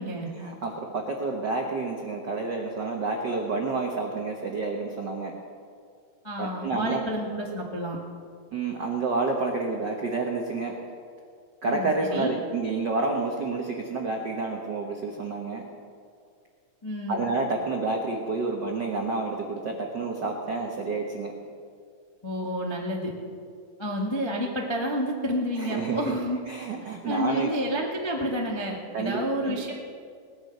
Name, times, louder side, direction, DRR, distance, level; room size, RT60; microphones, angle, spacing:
voice 1, 0.4-5.3 6.4-7.0 8.5-10.7 11.6-15.6 17.1-21.3 25.6-26.2 26.5-27.5 28.9-29.7, right 3 dB, 70° right, 1 dB, 1.0 m, -29 dB
voice 2, 6.2-8.0 11.7-12.4 16.8-17.2 22.2-23.1 23.8-26.4 27.0-29.7, equal, 30° left, -1 dB, 0.4 m, -30 dB
19.0 x 9.8 x 6.7 m, 2.2 s
omnidirectional pair, 3.8 m